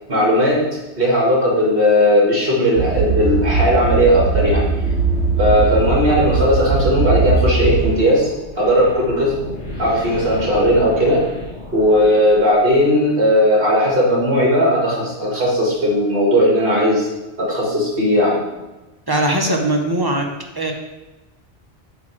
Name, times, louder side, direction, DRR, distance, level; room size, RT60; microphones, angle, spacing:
voice 1, 0.1-4.7 5.4-9.5 9.8-11.2 11.7-17.1 17.4-18.4, equal, 55° right, -3 dB, 2.1 m, -16 dB
sound 1, 2.8-7.9, right 4 dB, 75° right, 1.1 m, -19 dB
sound 2, 7.5-13.0, left 1 dB, 90° left, 2.1 m, -34 dB
voice 2, 19.1-20.3 20.5-20.7, right 1 dB, 25° right, 1 dB, 0.8 m, -19 dB
8.6 x 3.0 x 6.1 m, 1.1 s
omnidirectional pair, 1.1 m